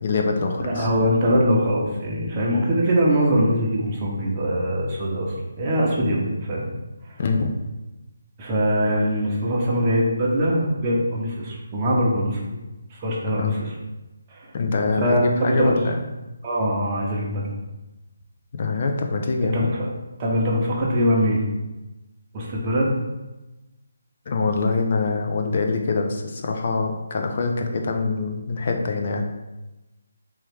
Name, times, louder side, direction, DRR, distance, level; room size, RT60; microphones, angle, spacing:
voice 1, 0.0-0.9 7.2-7.5 13.4-13.6 14.5-16.0 18.5-19.7 24.3-29.3, left 3 dB, 45° left, 3 dB, 0.5 m, -24 dB
voice 2, 0.6-6.7 8.4-12.4 12.9-13.7 14.3-14.5 15.0-15.7 16.4-17.5 19.4-19.9 20.2-21.4 22.3-22.9, equal, 25° right, -4 dB, 0.8 m, -22 dB
3.5 x 3.0 x 3.4 m, 1.0 s
figure-of-eight pair, 165°, 0 cm